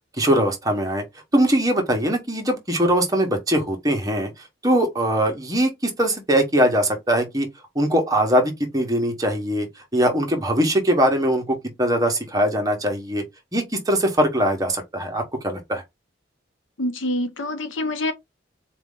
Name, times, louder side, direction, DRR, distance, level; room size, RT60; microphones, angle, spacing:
voice 1, 0.2-1.0 1.3-4.3 4.6-7.5 7.7-9.7 9.9-13.2 13.5-15.8, equal, 20° right, 1.1 m, -21 dB
voice 2, 16.8-18.1, left 1 dB, 90° left, 0.9 m, -26 dB
4.2 x 2.9 x 3.7 m
head